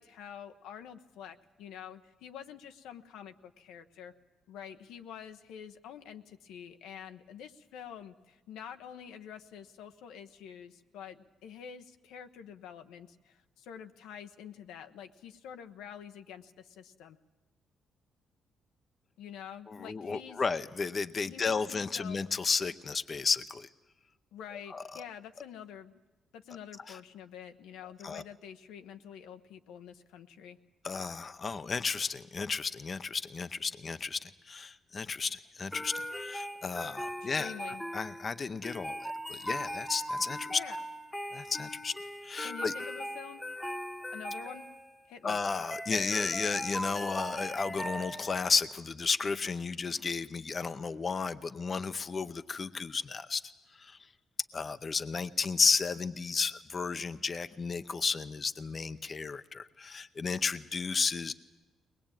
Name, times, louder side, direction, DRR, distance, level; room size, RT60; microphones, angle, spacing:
voice 1, 0.0-4.1 4.5-17.2 19.2-20.4 21.2-22.2 24.3-26.0 26.3-30.6 37.2-37.8 40.5-40.8 42.4-43.4 44.1-44.7 45.1-45.4, left 8 dB, 90° left, 7 dB, 1.0 m, -47 dB
voice 2, 19.7-23.7 24.7-24.8 26.9-27.0 28.0-28.2 30.8-35.9 36.2-37.5 37.9-40.6 41.3-41.9 42.2-42.7 45.2-53.4 53.8-54.0 54.5-61.3, left 5 dB, 35° left, 11 dB, 0.7 m, -33 dB
sound 1, 35.7-48.5, equal, 10° left, 1.2 m, -39 dB
22.0 x 20.0 x 8.9 m, 1.1 s
cardioid pair, 90°, 0 cm